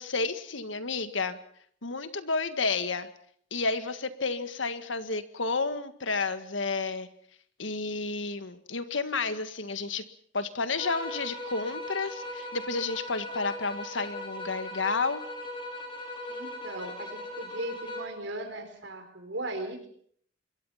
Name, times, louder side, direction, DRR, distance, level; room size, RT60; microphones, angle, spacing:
voice 1, 0.0-1.4 1.8-3.1 3.5-7.1 7.6-10.0 10.3-15.2, left 4 dB, 80° left, 10 dB, 1.8 m, -31 dB
sound 1, 10.8-18.2, left 1 dB, 25° left, 5.0 m, -39 dB
voice 2, 16.3-19.9, right 1 dB, 65° right, 7 dB, 4.6 m, -37 dB
26.0 x 22.5 x 5.8 m, 0.63 s
head